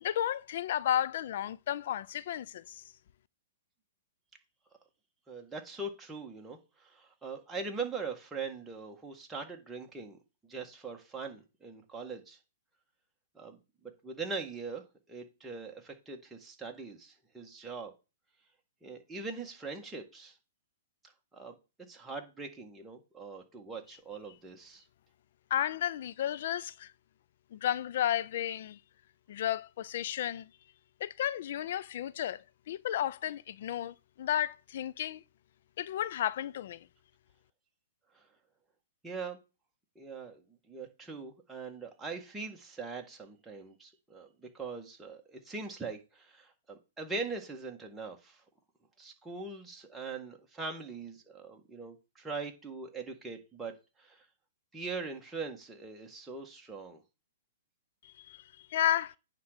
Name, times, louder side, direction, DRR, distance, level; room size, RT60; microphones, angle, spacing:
voice 1, 0.0-2.8 25.5-26.9 27.5-28.8 29.3-30.5 31.0-35.2 35.8-36.9 58.0-59.2, left 11 dB, 60° left, 0.4 m, -33 dB
voice 2, 5.3-10.2 10.5-12.4 13.3-17.9 18.8-20.4 21.3-21.5 21.9-24.8 38.1-38.2 39.0-39.4 39.9-40.4 40.7-48.4 49.0-53.7 54.0-54.2 54.7-57.0, right 4 dB, 10° right, 1.7 m, -41 dB
9.4 x 3.7 x 6.7 m
hypercardioid pair, 140°, 0 cm